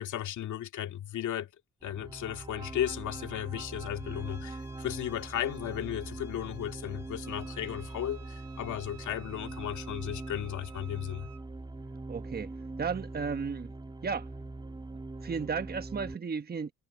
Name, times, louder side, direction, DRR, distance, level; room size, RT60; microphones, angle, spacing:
voice 1, 0.0-1.5 1.8-11.3, left 11 dB, 75° left, 2.1 m, -35 dB
sound 1, 1.8-16.2, right 2 dB, 15° right, 2.6 m, -42 dB
sound 2, 3.9-9.2, left 6 dB, 35° left, 5.0 m, -59 dB
Wind instrument woodwind instrument, 7.2-11.5, right 9 dB, 55° right, 1.5 m, -55 dB
voice 2, 12.1-12.5 12.8-13.7 14.0-14.3 15.2-16.7, right 5 dB, 30° right, 1.3 m, -34 dB
cardioid pair, 90°, 30 cm